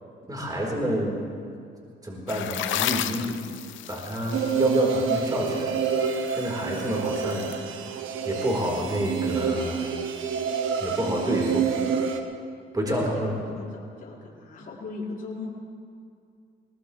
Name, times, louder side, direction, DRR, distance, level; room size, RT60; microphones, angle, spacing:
voice 1, 0.3-1.2 2.0-3.4 3.9-5.8 6.3-7.5 8.2-9.9 10.8-11.6 12.7-13.3, equal, 20° right, -2 dB, 4.4 m, -28 dB
sound 1, 2.3-7.6, left 11 dB, 80° left, 0.7 m, -33 dB
sound 2, 4.3-12.2, right 6 dB, 85° right, 1.3 m, -28 dB
voice 2, 12.8-15.5, left 3 dB, 45° left, -6 dB, 4.7 m, -37 dB
21.5 x 19.5 x 3.4 m, 2.4 s
cardioid pair, 90°, 20 cm